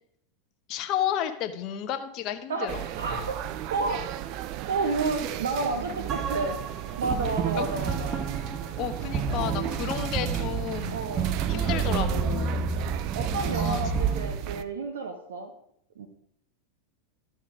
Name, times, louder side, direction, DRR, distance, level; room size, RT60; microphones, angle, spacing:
voice 1, 0.7-2.8 7.6-7.9 8.8-11.0 11.5-12.5 13.6-13.8, left 10 dB, 45° left, 7 dB, 1.1 m, -32 dB
voice 2, 2.5-4.4 4.7-6.6 7.0-8.2 10.9-11.4 13.1-15.5 16.0-16.1, right 3 dB, 80° right, 5 dB, 1.0 m, -31 dB
sound 1, 2.7-14.6, right 13 dB, 50° right, 0.5 m, -34 dB
sound 2, 6.1-14.2, right 5 dB, 30° right, 1.7 m, -30 dB
13.5 x 4.4 x 4.9 m, 0.70 s
hypercardioid pair, 95°, 0 cm